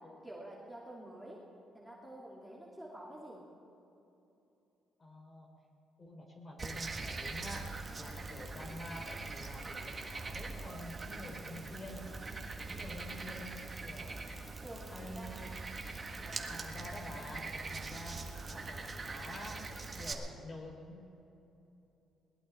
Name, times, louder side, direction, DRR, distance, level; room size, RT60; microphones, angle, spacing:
voice 1, 0.0-1.4 1.7-3.4 14.6-15.5, right 1 dB, ahead, -5 dB, 2.8 m, -49 dB
voice 2, 5.0-5.5 6.0-12.1 12.7-14.2 14.9-15.6 16.2-18.3 18.5-19.6 19.9-21.1, left 1 dB, 30° left, 0 dB, 3.9 m, -48 dB
Frog, 6.6-20.1, right 3 dB, 30° right, 1.6 m, -43 dB
21.0 x 19.0 x 3.6 m, 2.9 s
cardioid pair, 110°, 0 cm